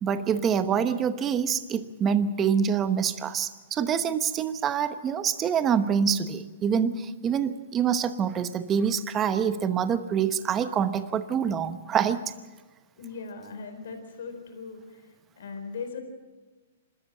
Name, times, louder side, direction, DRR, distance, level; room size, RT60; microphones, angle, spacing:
voice 1, 0.0-12.2, right 7 dB, 20° right, 11 dB, 1.0 m, -26 dB
voice 2, 13.0-14.8 15.4-16.0, left 5 dB, 75° left, 6 dB, 4.1 m, -38 dB
28.0 x 13.0 x 7.6 m, 1.2 s
hypercardioid pair, 155°, 0 cm